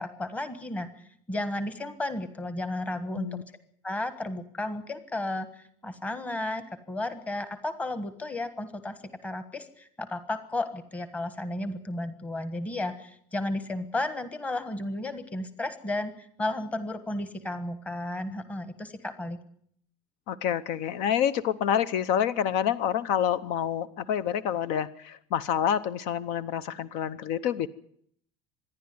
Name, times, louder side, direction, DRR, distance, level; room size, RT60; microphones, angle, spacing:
voice 1, 0.0-3.4 3.8-19.4, left 2 dB, 10° left, 11 dB, 1.4 m, -33 dB
voice 2, 20.3-27.7, left 9 dB, 60° left, 16 dB, 0.9 m, -27 dB
25.5 x 11.0 x 9.5 m, 0.65 s
cardioid pair, 180°, 14 cm